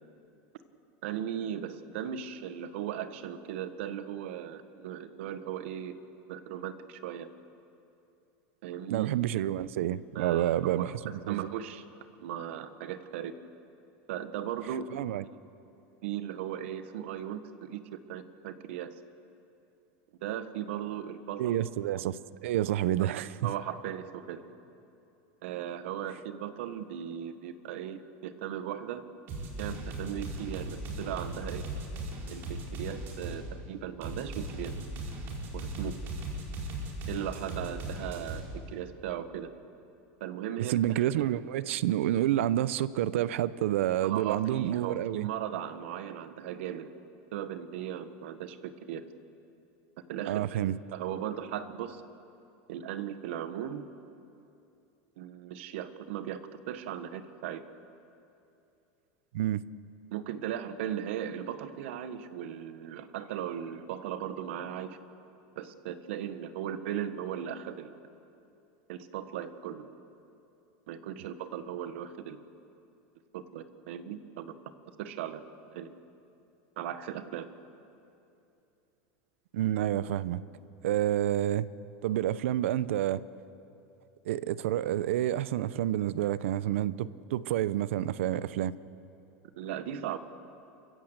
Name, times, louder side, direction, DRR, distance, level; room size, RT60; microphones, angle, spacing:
voice 1, 1.0-5.9 6.3-7.3 8.6-9.1 10.1-11.8 12.2-13.3 14.1-14.8 16.0-19.0 20.2-21.6 23.0-23.1 23.4-24.4 25.4-29.0 29.6-31.6 32.3-34.7 35.5-36.0 37.1-39.5 40.2-41.0 44.0-46.9 47.3-49.0 50.1-50.5 50.9-52.0 52.7-53.8 55.2-57.6 60.1-65.0 65.5-68.0 68.9-69.8 70.9-72.4 73.3-74.5 75.0-75.5 75.7-75.9 76.8-77.5 89.6-90.2, right 10 dB, 70° right, 10 dB, 1.4 m, -37 dB
voice 2, 8.9-11.5 14.9-15.2 21.4-23.5 40.6-45.3 50.3-50.8 59.3-59.6 79.5-80.4 80.8-81.7 82.0-83.2 84.2-88.7, right 12 dB, 85° right, 17 dB, 0.7 m, -29 dB
sound 1, 29.3-33.4 34.0-38.4, right 2 dB, 35° right, 4.6 m, -38 dB
29.0 x 15.5 x 8.0 m, 2.7 s
supercardioid pair, 165°, 7 cm